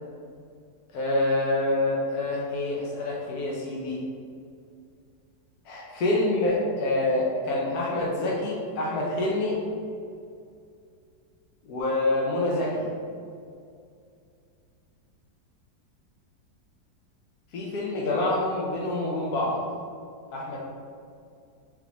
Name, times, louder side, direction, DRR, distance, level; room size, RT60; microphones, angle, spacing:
voice 1, 0.9-4.0 5.7-9.6 11.7-12.9 17.5-19.6 20.3-20.6, left 2 dB, 65° left, -4 dB, 1.0 m, -26 dB
3.9 x 3.6 x 2.8 m, 2.3 s
omnidirectional pair, 2.0 m